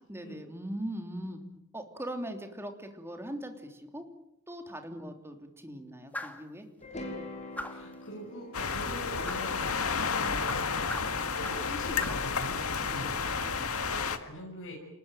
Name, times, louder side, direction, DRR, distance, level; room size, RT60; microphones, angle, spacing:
voice 1, 0.1-1.4 1.7-4.1 4.5-6.7 12.9-13.7, right 1 dB, 10° right, 5 dB, 3.2 m, -40 dB
sound 1, 6.1-6.5 7.6-7.9 9.3-9.5 10.5-11.7 12.0-12.3, left 1 dB, 5° left, 2.2 m, -40 dB
sound 2, 6.8-11.0, left 1 dB, 35° left, 5.6 m, -45 dB
voice 2, 7.7-10.7 11.3-13.4 13.7-14.7, left 1 dB, 60° left, -2 dB, 6.6 m, -42 dB
sound 3, 8.5-14.2, left 5 dB, 80° left, 2.1 m, -31 dB
29.0 x 20.0 x 9.2 m, 0.83 s
head